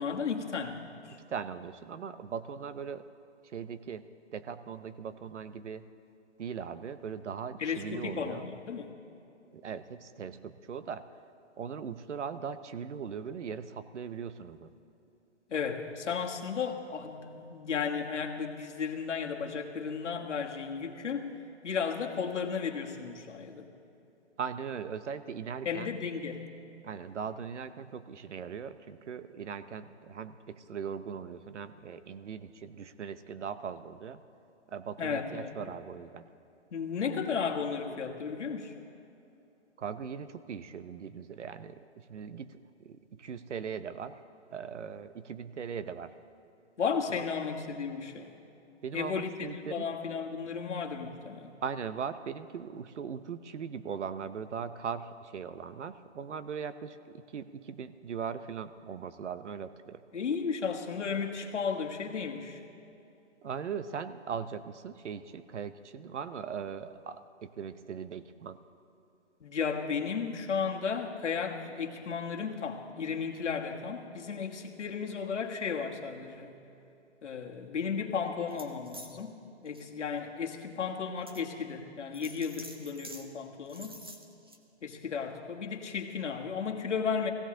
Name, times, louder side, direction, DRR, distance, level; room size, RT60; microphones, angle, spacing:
voice 1, 0.0-1.2 7.6-8.9 15.5-21.4 21.6-23.7 25.6-26.4 35.0-35.8 36.7-38.7 46.8-48.3 48.9-51.5 60.1-62.6 69.4-76.6 77.2-79.4 79.6-84.0 84.8-87.3, left 6 dB, 80° left, 2 dB, 1.6 m, -34 dB
voice 2, 1.3-3.0 3.5-4.0 4.3-5.8 6.4-8.5 9.5-11.0 11.6-14.7 24.4-25.9 26.8-34.2 34.7-36.3 39.8-44.2 44.5-46.1 48.8-49.9 51.6-60.0 63.4-68.6, right 7 dB, 75° right, 12 dB, 0.9 m, -39 dB
sound 1, 78.5-79.1 79.6-79.8 80.4-80.5 81.3-81.4 82.1-83.2 83.7-84.6, right 1 dB, 20° right, 0.4 m, -47 dB
17.5 x 16.0 x 3.8 m, 2.8 s
hypercardioid pair, 165°, 35 cm